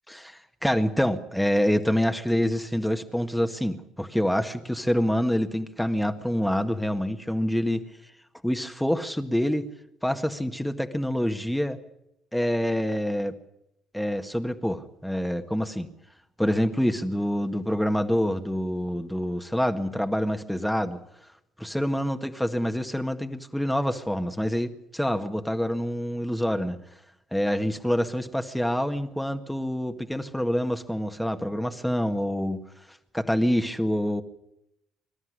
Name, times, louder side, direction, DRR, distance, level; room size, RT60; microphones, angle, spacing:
voice 1, 0.1-7.8 8.4-9.7 10.0-11.8 12.3-13.3 13.9-15.9 16.4-21.0 21.6-26.8 27.3-32.6 33.1-34.2, equal, 5° left, 6 dB, 1.8 m, -26 dB
25.0 x 13.0 x 9.7 m, 0.82 s
figure-of-eight pair, 50°, 0 cm